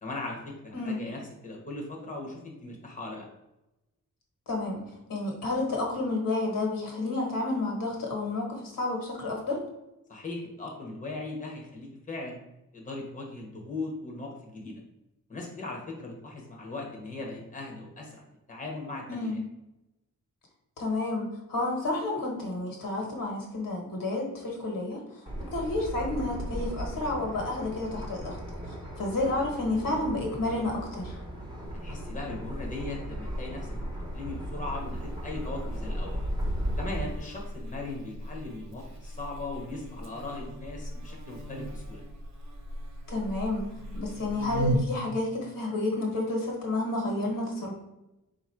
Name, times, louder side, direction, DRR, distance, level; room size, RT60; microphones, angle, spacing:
voice 1, 0.0-3.3 10.1-12.4 12.7-14.8 15.3-18.2 18.5-19.4 31.8-33.8 34.1-36.2 36.8-42.0, left 2 dB, 25° left, -1 dB, 0.8 m, -39 dB
voice 2, 4.5-4.8 5.1-9.6 19.1-19.4 20.8-25.2 25.5-28.4 29.0-31.2 43.1-43.7 43.9-47.7, left 2 dB, 75° left, 0 dB, 1.2 m, -30 dB
sound 1, 25.3-37.0, equal, 15° right, 0.8 m, -36 dB
Buzz, 31.6-44.8, equal, 55° right, 0.7 m, -38 dB
3.8 x 2.5 x 4.3 m, 0.93 s
wide cardioid pair, 140°, 34 cm